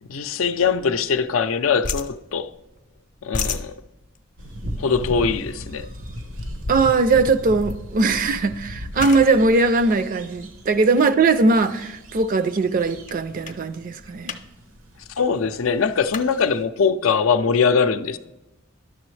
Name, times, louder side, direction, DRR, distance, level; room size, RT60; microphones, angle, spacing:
voice 1, 0.1-2.5 3.2-3.7 4.8-5.9 15.2-18.2, left 5 dB, 90° left, 0.5 m, -21 dB
sound 1, 0.6-1.5 1.8-2.8 3.1-10.9 11.5-11.8 12.2-12.3 12.6-13.2 13.4-13.6 14.0-14.4 14.7-14.8 15.0-16.3, left 4 dB, 40° left, 0.6 m, -34 dB
sound 2, 4.4-16.6, equal, 85° right, 1.0 m, -38 dB
voice 2, 6.7-14.4, right 3 dB, 45° right, 0.4 m, -20 dB
11.0 x 6.9 x 3.2 m
head